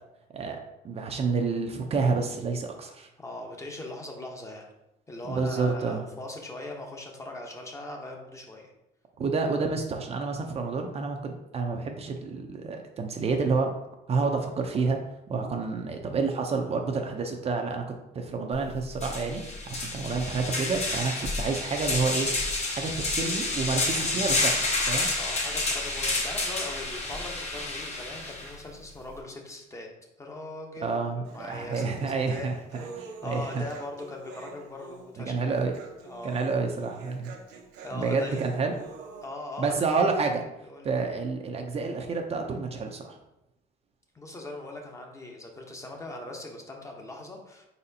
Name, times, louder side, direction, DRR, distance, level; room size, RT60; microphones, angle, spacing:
voice 1, 0.8-3.1 5.3-6.1 9.2-13.7 14.1-15.0 15.3-17.9 18.1-22.3 22.7-25.1 30.8-33.6 35.2-35.8 36.2-37.3 37.9-38.7 39.6-40.4 40.8-43.2, right 4 dB, 35° right, 3 dB, 0.6 m, -29 dB
voice 2, 3.2-4.7 5.1-8.7 15.5-15.7 21.3-21.4 25.2-29.9 30.2-32.9 33.2-35.6 36.0-36.4 37.8-38.4 39.2-39.7 40.6-40.9 44.1-47.7, left 2 dB, 20° left, 1 dB, 0.8 m, -40 dB
sound 1, 18.5-18.6 19.0-28.5, left 2 dB, 40° left, 1.2 m, -29 dB
Human voice, 31.2-39.3, right 4 dB, 85° right, 0.9 m, -45 dB
4.2 x 4.1 x 2.7 m, 0.89 s
cardioid pair, 110°, 17 cm